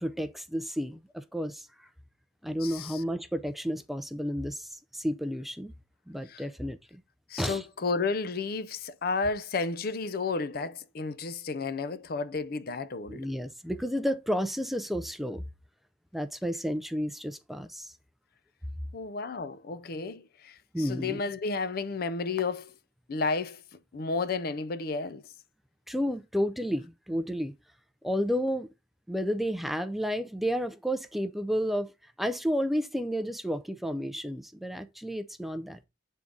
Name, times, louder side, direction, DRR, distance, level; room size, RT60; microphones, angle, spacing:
voice 1, 0.0-1.9 2.4-5.7 6.1-7.0 7.4-7.7 13.1-15.4 16.1-17.9 20.7-21.2 25.9-27.6 28.0-28.7 29.1-35.8, equal, ahead, 0.4 m, -31 dB
voice 2, 2.6-3.0 6.3-6.4 7.3-13.3 18.9-22.7 23.1-23.6 23.9-25.2, left 4 dB, 55° left, 0.5 m, -32 dB
7.3 x 3.6 x 3.8 m
head